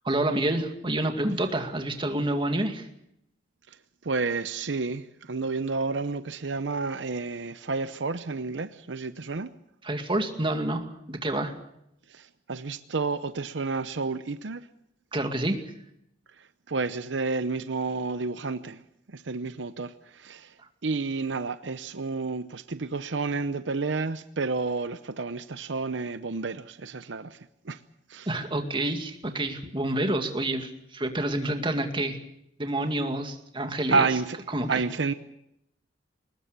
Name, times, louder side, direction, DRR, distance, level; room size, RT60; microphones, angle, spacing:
voice 1, 0.0-2.9 9.8-11.5 15.1-15.6 28.3-32.2 32.6-34.1 34.5-34.8, right 1 dB, 30° right, 2.3 m, -28 dB
voice 2, 4.0-9.5 12.1-14.7 16.4-18.8 19.1-20.5 20.8-27.8 28.1-28.3 33.9-34.4 34.7-35.1, right 4 dB, 80° right, 0.8 m, -30 dB
22.5 x 20.0 x 6.8 m
head